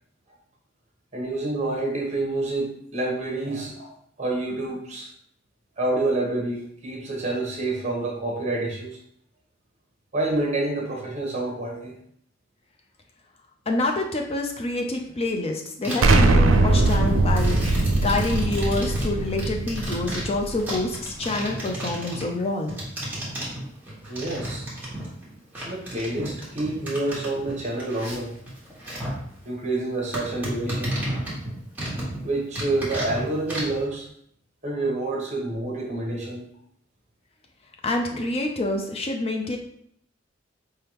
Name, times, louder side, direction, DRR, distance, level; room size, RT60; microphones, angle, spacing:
voice 1, 1.1-5.1 5.8-9.0 10.1-11.9 24.1-24.7 25.6-28.3 29.4-30.9 32.2-34.1 34.6-36.4 38.1-38.2, right 2 dB, 35° right, 0 dB, 1.1 m, -28 dB
voice 2, 13.7-17.6 17.9-22.8 37.8-39.6, left 2 dB, 30° left, 2 dB, 0.4 m, -27 dB
sound 1, 15.8-16.2 16.5-25.3 25.5-29.2 29.6-29.7 30.1-32.2 32.5-33.8, right 1 dB, 10° right, 1.4 m, -33 dB
Explosion, 16.0-20.8, right 2 dB, 85° right, 0.5 m, -21 dB
4.5 x 3.4 x 2.9 m, 0.68 s
head